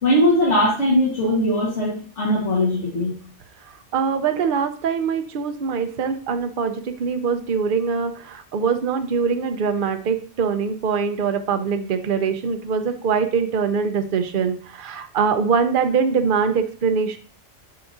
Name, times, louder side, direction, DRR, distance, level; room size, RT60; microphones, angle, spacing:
voice 1, 0.0-3.1, left 1 dB, 75° left, -5 dB, 1.9 m, -20 dB
voice 2, 3.9-17.2, right 6 dB, 50° right, 7 dB, 0.8 m, -23 dB
7.8 x 4.8 x 2.6 m, 0.41 s
omnidirectional pair, 1.3 m